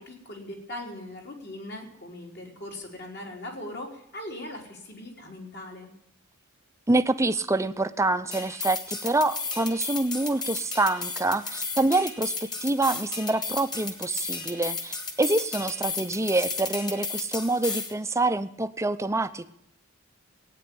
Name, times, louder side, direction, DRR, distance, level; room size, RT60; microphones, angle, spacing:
voice 1, 0.0-5.9, left 1 dB, 50° left, 1 dB, 3.7 m, -40 dB
voice 2, 6.9-19.5, right 2 dB, 15° right, 11 dB, 0.6 m, -26 dB
sound 1, 8.3-17.9, left 4 dB, 20° left, 1.8 m, -34 dB
18.0 x 9.3 x 8.6 m, 0.78 s
head